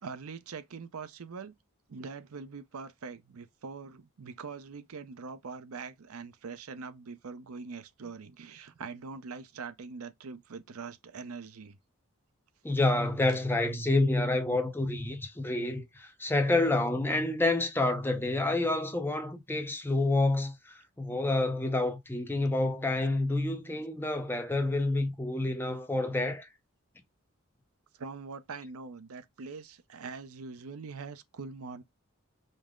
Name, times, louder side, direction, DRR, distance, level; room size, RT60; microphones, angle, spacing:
voice 1, 0.0-1.5 1.9-11.8 28.0-31.8, right 4 dB, 80° right, 0.6 m, -43 dB
voice 2, 12.6-26.5, left 2 dB, 10° left, 0.6 m, -28 dB
5.2 x 2.1 x 3.6 m
head